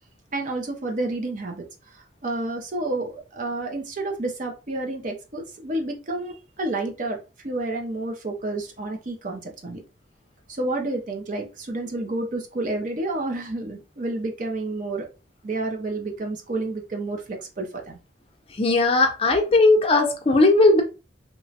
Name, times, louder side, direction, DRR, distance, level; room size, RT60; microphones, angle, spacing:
voice 1, 0.3-1.7 1.9-7.2 7.4-9.8 10.5-15.1 15.4-18.0, right 2 dB, 40° right, 0.5 m, -30 dB
voice 2, 18.5-20.8, left 2 dB, 30° left, 0.4 m, -18 dB
2.9 x 2.2 x 2.6 m
head